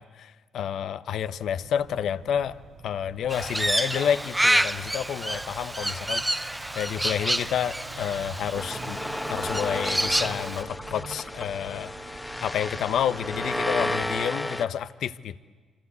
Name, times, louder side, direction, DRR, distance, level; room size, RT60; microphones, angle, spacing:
voice 1, 0.0-2.6 2.8-6.4 6.7-9.0 9.3-15.4, left 9 dB, 70° left, 14 dB, 0.9 m, -29 dB
sound 1, 1.4-14.2, right 5 dB, 80° right, 3.0 m, -46 dB
Crow, 3.3-10.6, right 1 dB, 10° right, 0.7 m, -28 dB
sound 2, 8.6-14.6, left 1 dB, 10° left, 1.5 m, -32 dB
27.0 x 26.0 x 8.2 m, 1.5 s
cardioid pair, 90°, 0 cm